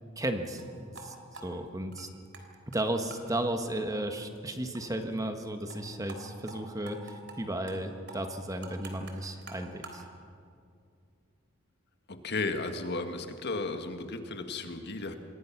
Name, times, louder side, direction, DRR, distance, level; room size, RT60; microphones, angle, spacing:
voice 1, 0.2-0.6 1.0-1.1 1.4-2.1 2.7-10.0, right 1 dB, 15° right, 6 dB, 1.5 m, -34 dB
sound 1, 0.5-0.7 0.9-1.1 1.3-2.4 2.7-2.8 3.1-3.2 3.6-3.7 3.9-4.0 4.4-4.5 4.7-4.8 5.1-5.2 5.5-5.8 6.1-6.2 6.5-6.6 6.9-7.4 7.7-7.8 8.1-10.0, right 3 dB, 60° right, 3.5 m, -47 dB
voice 2, 12.1-15.1, left 3 dB, 55° left, 6 dB, 1.8 m, -34 dB
27.0 x 21.5 x 6.0 m, 2.4 s
head